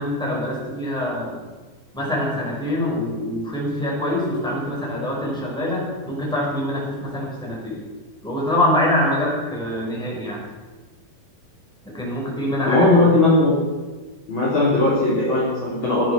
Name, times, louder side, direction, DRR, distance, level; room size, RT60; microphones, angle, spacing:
voice 1, 0.0-1.4 1.9-7.8 8.2-10.4 11.8-13.0, left 1 dB, ahead, -5 dB, 5.1 m, -24 dB
voice 2, 12.7-13.6 14.3-16.1, left 2 dB, 30° left, -7 dB, 3.7 m, -18 dB
16.5 x 12.5 x 5.9 m, 1.3 s
omnidirectional pair, 4.8 m